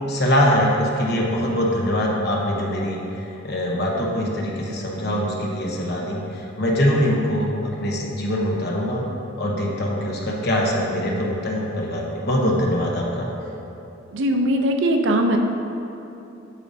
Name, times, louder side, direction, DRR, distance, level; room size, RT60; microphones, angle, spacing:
voice 1, 0.0-9.1 9.4-13.3, equal, 55° left, -2 dB, 0.9 m, -23 dB
voice 2, 14.1-15.4, right 1 dB, 65° right, 4 dB, 0.5 m, -20 dB
8.3 x 5.1 x 2.7 m, 2.9 s
head